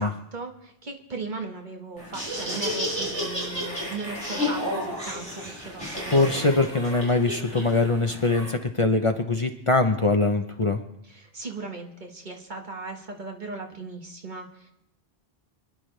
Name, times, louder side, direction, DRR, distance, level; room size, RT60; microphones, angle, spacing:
voice 1, 0.0-6.5 11.0-14.7, right 3 dB, 50° right, 3 dB, 1.5 m, -38 dB
Laughter, 2.0-8.5, left 1 dB, 25° right, 4.6 m, -32 dB
voice 2, 6.1-10.8, left 3 dB, 35° left, 5 dB, 0.7 m, -22 dB
26.0 x 10.5 x 3.3 m, 0.79 s
omnidirectional pair, 1.0 m